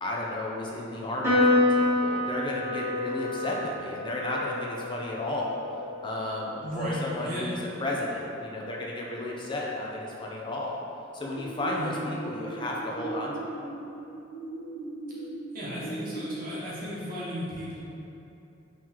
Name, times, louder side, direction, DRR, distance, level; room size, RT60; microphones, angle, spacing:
voice 1, 0.0-5.6 6.0-10.8 11.1-13.3, left 1 dB, 25° left, -3 dB, 0.4 m, -33 dB
Piano, 1.2-7.9, left 2 dB, 15° right, 1.1 m, -28 dB
voice 2, 6.6-7.5 11.7-12.0 15.5-17.8, equal, 50° right, -9 dB, 0.9 m, -35 dB
sound 1, 11.3-16.3, right 2 dB, 65° left, 0.8 m, -38 dB
3.8 x 3.0 x 2.9 m, 2.8 s
head